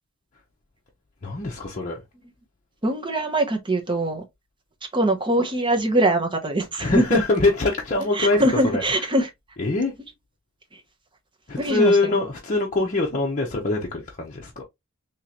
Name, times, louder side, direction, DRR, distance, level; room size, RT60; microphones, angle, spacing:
voice 1, 1.2-2.0 6.8-8.8 9.6-9.9 11.5-14.6, left 2 dB, 35° left, 0.7 m, -23 dB
voice 2, 2.8-4.2 4.9-7.2 8.1-9.3 10.7-10.8 11.6-12.1, right 1 dB, 20° right, 0.9 m, -22 dB
3.7 x 3.0 x 2.9 m
head